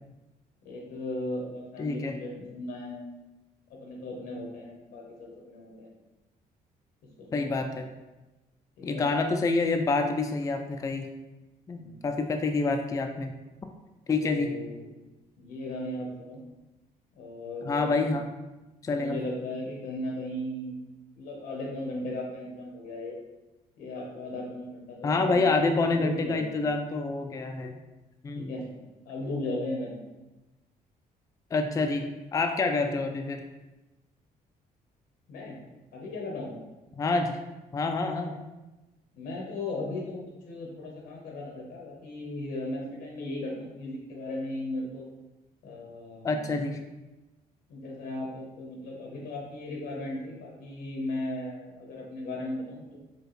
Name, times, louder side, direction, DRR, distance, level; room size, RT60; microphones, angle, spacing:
voice 1, 0.6-3.0 3.8-5.9 7.2-7.5 8.8-9.0 11.8-12.0 14.1-14.9 15.4-16.4 17.2-18.2 18.9-20.7 21.2-23.2 23.8-25.4 25.9-26.6 28.4-28.7 29.1-29.9 35.3-35.6 35.9-36.5 39.1-40.2 40.5-45.0 45.6-46.6 47.7-53.0, left 1 dB, 85° left, -2 dB, 1.2 m, -36 dB
voice 2, 1.8-2.2 7.3-7.9 8.8-11.1 11.7-13.3 14.1-14.6 17.6-18.3 18.8-19.2 25.0-27.7 28.2-28.5 31.5-32.1 32.3-33.4 37.0-37.4 37.7-38.4 46.2-46.8, left 3 dB, 20° left, 5 dB, 0.3 m, -27 dB
4.5 x 2.5 x 3.2 m, 1.1 s
cardioid pair, 90°, 15 cm